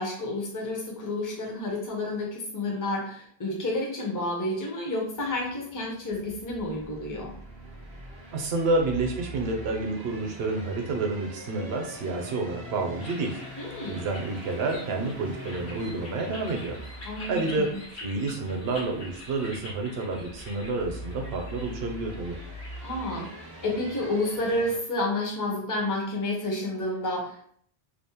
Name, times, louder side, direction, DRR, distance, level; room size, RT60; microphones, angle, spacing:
voice 1, 0.0-7.3 13.6-14.0 17.1-17.7 22.8-27.5, left 1 dB, 25° left, -1 dB, 0.5 m, -30 dB
sound 1, 5.1-24.8, right 1 dB, 40° right, 0.4 m, -44 dB
voice 2, 8.3-13.4 13.8-16.8 17.3-22.4, right 3 dB, 75° right, 2 dB, 0.8 m, -29 dB
sound 2, 13.0-25.2, left 1 dB, 85° left, 1.2 m, -46 dB
2.6 x 2.0 x 2.8 m, 0.63 s
omnidirectional pair, 1.1 m